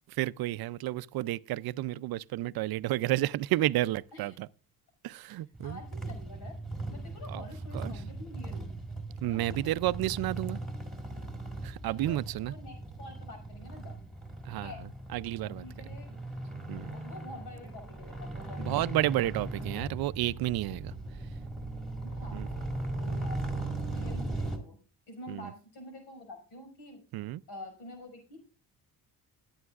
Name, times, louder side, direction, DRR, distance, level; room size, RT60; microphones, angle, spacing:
voice 1, 0.1-4.5 5.0-5.8 7.3-7.4 7.7-8.0 9.2-10.6 11.6-12.5 14.4-16.0 16.7-17.0 18.6-20.9 22.3-22.5 23.1-23.3 24.1-24.2 25.3-25.5 27.1-27.4, right 15 dB, 70° right, 0.5 m, -31 dB
sound 1, 5.5-24.6, right 2 dB, ahead, 1.8 m, -38 dB
voice 2, 5.6-6.6 6.9-8.7 9.2-9.7 11.8-14.0 14.5-14.9 15.4-16.2 16.8-19.9 22.0-22.5 23.0-23.5 23.9-24.8 25.1-27.0 27.5-28.4, left 2 dB, 85° left, 5.8 m, -48 dB
20.5 x 8.8 x 2.4 m
cardioid pair, 145°, 37 cm